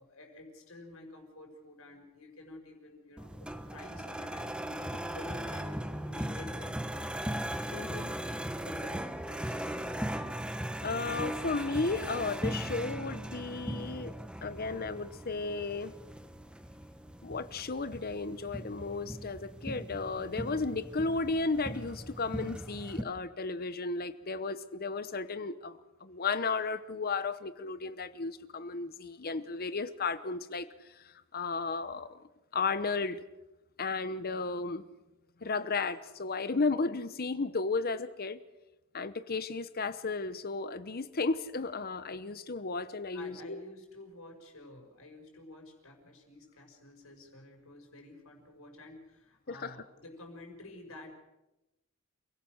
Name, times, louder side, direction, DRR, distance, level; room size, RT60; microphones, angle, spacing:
voice 1, 0.0-8.2 8.5-10.1 43.1-51.2, left 2 dB, 75° left, 3 dB, 5.7 m, -51 dB
sound 1, 3.2-23.0, right 1 dB, 5° right, 1.0 m, -38 dB
voice 2, 7.7-8.1 10.8-14.1 14.4-15.9 17.2-32.2 32.5-33.2 33.8-34.9 35.4-38.4 38.9-43.6 49.5-49.7, left 3 dB, 45° left, 13 dB, 0.9 m, -34 dB
29.0 x 17.5 x 6.4 m, 0.99 s
head